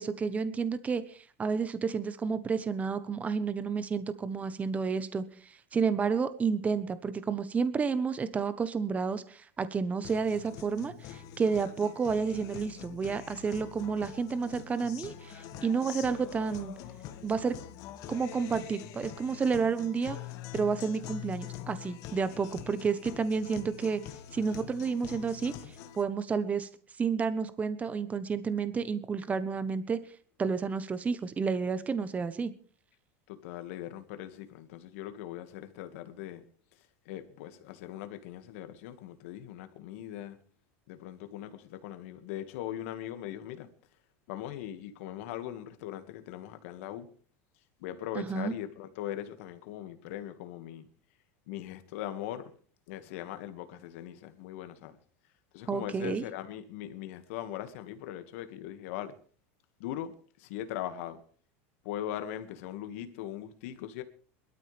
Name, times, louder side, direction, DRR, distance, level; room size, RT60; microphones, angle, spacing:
voice 1, 0.0-5.2 5.7-16.7 17.2-17.6 18.1-20.2 20.5-24.0 24.3-25.5 25.9-26.7 27.0-30.0 30.4-32.5 48.1-48.5 55.7-56.2, right 5 dB, 20° right, 1.1 m, -30 dB
Guitar, 10.0-26.0, left 11 dB, 55° left, 1.7 m, -45 dB
voice 2, 33.3-36.4 37.1-40.4 40.9-43.7 44.3-47.1 47.8-50.9 51.5-52.5 52.9-55.0 55.5-59.1 59.8-60.1 60.4-61.2 61.8-64.0, left 12 dB, 70° left, 2.0 m, -40 dB
23.0 x 13.0 x 3.5 m
supercardioid pair, 130°, 7 cm